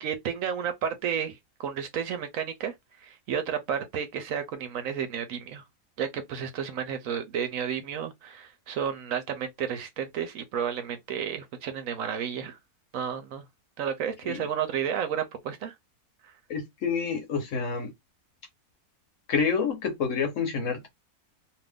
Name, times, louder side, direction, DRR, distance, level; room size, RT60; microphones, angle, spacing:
voice 1, 0.0-2.7 3.0-5.6 6.0-12.6 12.9-13.4 13.8-15.7 16.2-16.3, right 8 dB, 70° right, 0.9 m, -32 dB
voice 2, 16.5-17.9 19.3-20.9, left 5 dB, 60° left, 1.1 m, -28 dB
2.7 x 2.5 x 3.4 m
omnidirectional pair, 1.6 m